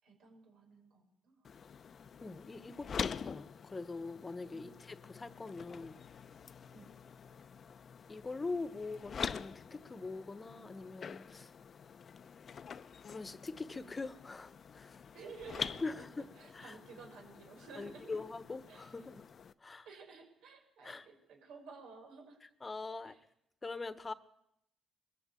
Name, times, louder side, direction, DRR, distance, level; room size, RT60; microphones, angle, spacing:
voice 1, 0.0-1.4 4.5-4.7 6.7-6.9 15.1-16.1 16.4-18.2 18.7-19.0 19.8-22.4 23.0-23.2, right 4 dB, 85° right, 2 dB, 6.3 m, -53 dB
sound 1, 1.4-19.5, left 7 dB, 50° left, 0.8 m, -46 dB
voice 2, 2.2-6.0 8.1-11.5 13.1-15.0 15.8-16.2 16.5-16.8 17.8-19.2 19.6-19.8 20.8-21.1 22.6-23.1 23.6-24.1, left 3 dB, 25° left, 14 dB, 1.2 m, -43 dB
22.0 x 15.0 x 8.5 m, 0.78 s
cardioid pair, 90°, 0 cm